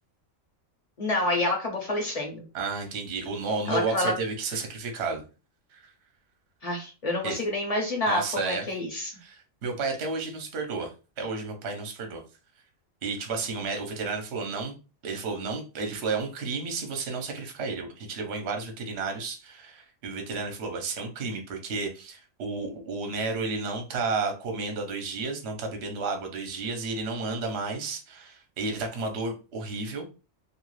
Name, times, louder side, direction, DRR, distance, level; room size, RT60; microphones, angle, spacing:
voice 1, 1.0-2.4 3.7-4.1 6.6-9.1, left 1 dB, 40° left, 1 dB, 0.6 m, -28 dB
voice 2, 2.5-5.2 5.7-5.9 7.2-7.4 8.1-8.6 9.2-10.9 11.2-12.2 13.0-14.7 15.0-30.1, right 4 dB, 60° right, 4 dB, 0.9 m, -32 dB
2.5 x 2.3 x 3.1 m, 0.32 s
omnidirectional pair, 1.4 m